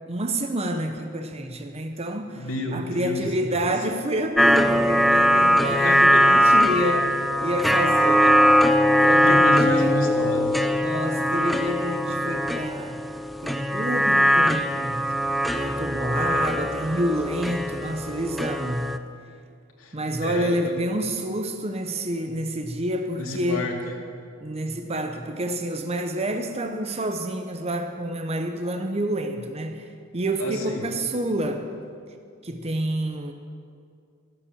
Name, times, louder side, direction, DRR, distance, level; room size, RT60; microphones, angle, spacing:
voice 1, 0.1-8.4 9.0-9.9 10.8-13.0 13.4-15.1 15.5-18.9 19.9-23.7 24.4-29.9 30.1-31.7 32.4-33.3, right 1 dB, 30° right, 5 dB, 0.8 m, -28 dB
voice 2, 2.3-3.6 5.6-6.2 6.5-6.7 9.2-10.6 19.8-20.7 23.2-23.8 30.4-30.9, left 1 dB, 80° left, 0 dB, 2.5 m, -30 dB
sound 1, 4.4-19.0, equal, ahead, 0.4 m, -21 dB
13.0 x 12.0 x 7.2 m, 2.3 s
head